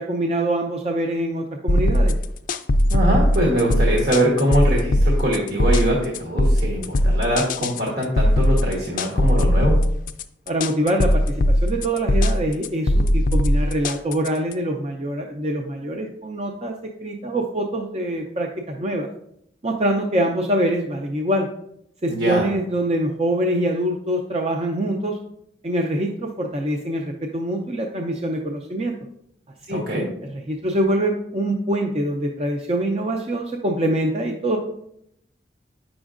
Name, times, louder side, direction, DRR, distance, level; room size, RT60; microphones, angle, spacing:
voice 1, 0.0-2.2 10.5-16.8 17.0-19.1 19.6-21.5 22.0-25.2 25.6-28.9 29.7-29.8 30.3-34.6, right 1 dB, 35° right, 1 dB, 0.5 m, -24 dB
sound 1, 1.7-14.5, left 1 dB, 50° left, 0.4 m, -19 dB
voice 2, 2.9-9.8 22.1-22.5 29.7-30.0, right 1 dB, 65° right, -3 dB, 1.2 m, -22 dB
8.8 x 6.1 x 2.5 m, 0.75 s
head